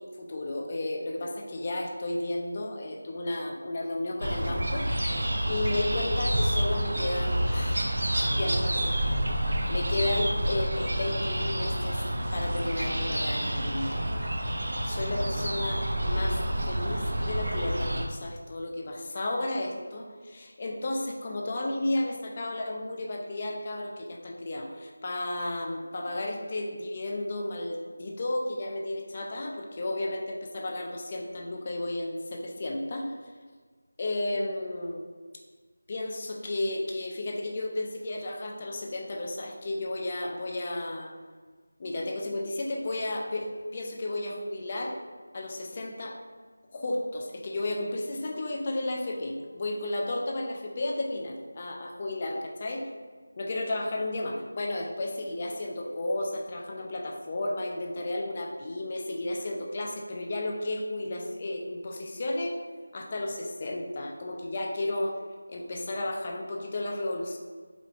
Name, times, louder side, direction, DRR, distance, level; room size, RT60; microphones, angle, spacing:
voice 1, 0.0-7.9 8.4-9.0 9.7-12.0 12.3-14.0 14.9-16.4 16.6-33.2 34.0-35.0 35.9-41.1 41.8-43.5 43.7-45.0 45.3-46.2 46.7-52.9 53.4-62.6 62.9-65.2 65.5-67.4, left 1 dB, 25° left, 0 dB, 0.4 m, -33 dB
sound 1, 4.2-18.0, right 1 dB, 65° right, 0.6 m, -28 dB
4.9 x 3.1 x 2.5 m, 1.5 s
figure-of-eight pair, 175°, 0 cm